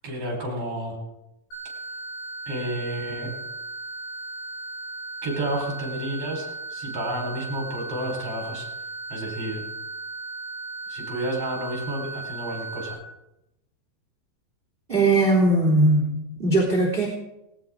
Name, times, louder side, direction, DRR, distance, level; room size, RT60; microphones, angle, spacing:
voice 1, 0.0-1.0 2.5-3.3 5.2-8.7 9.1-9.6 10.9-13.0, right 1 dB, 35° right, 0 dB, 5.3 m, -31 dB
sound 1, 1.5-12.9, right 2 dB, 75° left, 9.7 m, -36 dB
voice 2, 14.9-17.1, right 2 dB, 15° right, -2 dB, 3.0 m, -20 dB
19.0 x 18.5 x 3.8 m, 0.89 s
omnidirectional pair, 5.0 m